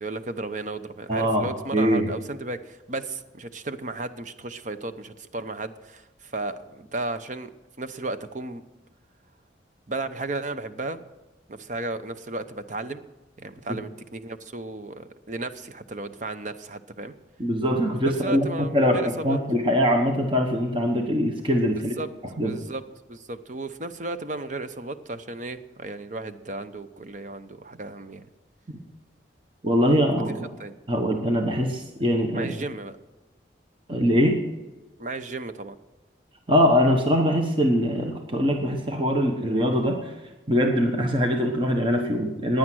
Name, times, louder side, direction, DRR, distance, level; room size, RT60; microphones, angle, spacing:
voice 1, 0.0-7.5 7.8-8.6 9.9-11.0 11.5-13.0 13.4-17.1 18.1-19.4 22.0-22.1 22.4-22.8 23.1-28.3 30.2-30.3 30.6-30.7 32.3-32.9 35.0-35.8, right 2 dB, 45° right, 10 dB, 0.8 m, -34 dB
voice 2, 1.1-2.1 13.7-13.8 17.4-21.9 22.4-22.5 29.6-30.5 30.9-32.5 33.9-34.4 36.5-40.1 40.5-42.6, equal, 30° right, 3 dB, 1.1 m, -22 dB
16.0 x 10.0 x 6.2 m, 1.1 s
head